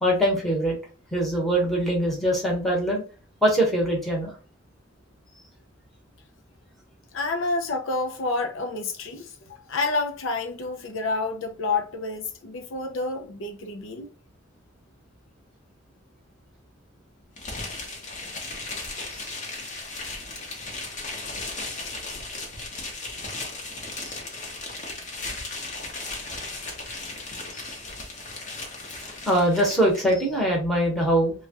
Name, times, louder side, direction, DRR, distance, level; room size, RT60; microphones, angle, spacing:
voice 1, 0.0-0.8 1.1-3.0 3.4-4.3 29.3-31.3, right 1 dB, ahead, 1.0 m, -22 dB
voice 2, 7.1-14.1, left 3 dB, 65° left, 0.5 m, -29 dB
sound 1, 17.4-30.1, left 2 dB, 35° left, 0.9 m, -36 dB
3.2 x 2.3 x 2.8 m
head